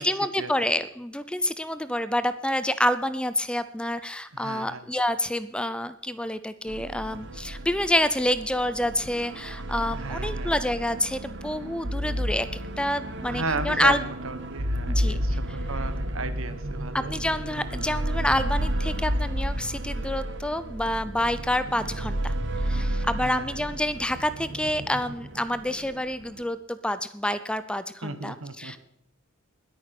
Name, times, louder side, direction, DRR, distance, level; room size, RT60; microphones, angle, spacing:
voice 1, 0.0-12.5 12.8-14.0 14.9-15.2 16.9-22.3 22.6-28.8, left 1 dB, 5° left, 13 dB, 0.5 m, -28 dB
voice 2, 4.3-4.9 9.9-10.5 13.3-17.1 17.6-17.7 23.2-23.6 28.0-28.8, right 3 dB, 75° right, 11 dB, 1.4 m, -34 dB
sound 1, 6.7-26.4, right 1 dB, 60° right, 1.4 m, -32 dB
20.0 x 9.0 x 5.9 m, 0.72 s
head